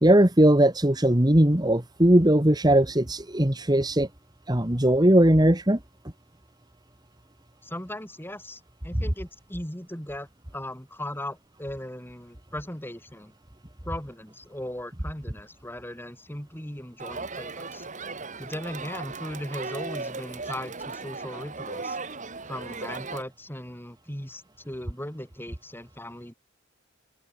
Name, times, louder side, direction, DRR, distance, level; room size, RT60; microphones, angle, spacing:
voice 1, 0.0-4.1 4.5-5.8, right 1 dB, 20° right, 1.9 m, -19 dB
voice 2, 7.6-13.3 13.8-17.9 18.4-22.0 22.5-26.3, left 1 dB, 10° left, 7.6 m, -38 dB
Crowd, 17.0-23.2, right 3 dB, 35° right, 3.5 m, -37 dB
open air
head